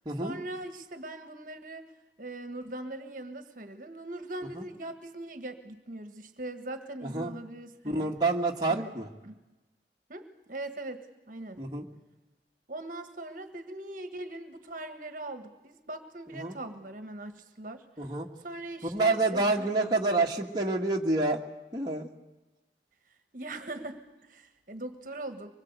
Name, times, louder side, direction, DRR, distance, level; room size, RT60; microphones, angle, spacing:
voice 1, 0.2-1.9 2.2-8.1 8.7-8.9 9.2-9.4 10.1-11.6 12.7-18.1 18.4-19.7 23.3-25.5, right 2 dB, 45° right, 8 dB, 1.6 m, -41 dB
voice 2, 7.0-7.3 7.8-9.1 11.6-11.9 16.3-16.6 18.0-18.3 18.8-21.4 21.7-22.1, right 2 dB, 25° right, -1 dB, 1.7 m, -28 dB
25.0 x 21.5 x 8.2 m, 1.1 s
head